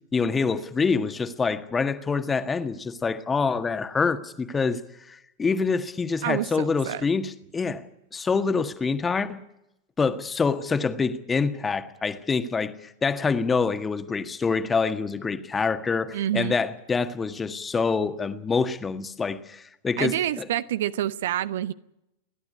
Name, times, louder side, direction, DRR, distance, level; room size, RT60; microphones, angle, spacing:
voice 1, 0.1-4.8 5.1-7.9 8.1-9.4 10.0-20.4, left 5 dB, 15° left, 1.6 m, -26 dB
voice 2, 6.2-7.0 16.1-16.6 20.0-21.7, right 12 dB, 55° right, 0.8 m, -27 dB
29.5 x 12.0 x 9.8 m
figure-of-eight pair, 90°, 0 cm